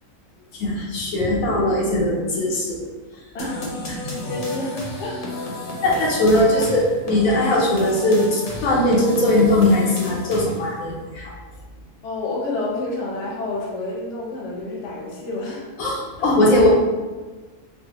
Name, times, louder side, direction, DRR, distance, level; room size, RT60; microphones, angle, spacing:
voice 1, 0.5-2.8 5.8-11.2 15.8-16.7, left 1 dB, 85° left, -3 dB, 1.1 m, -19 dB
voice 2, 3.3-5.6 5.9-6.1 6.5-6.6 12.0-15.7 16.2-16.3, left 2 dB, 70° left, -3 dB, 1.0 m, -30 dB
sound 1, 3.4-10.8, left 2 dB, 50° left, 0.8 m, -32 dB
4.0 x 2.0 x 2.9 m, 1.3 s
omnidirectional pair, 1.4 m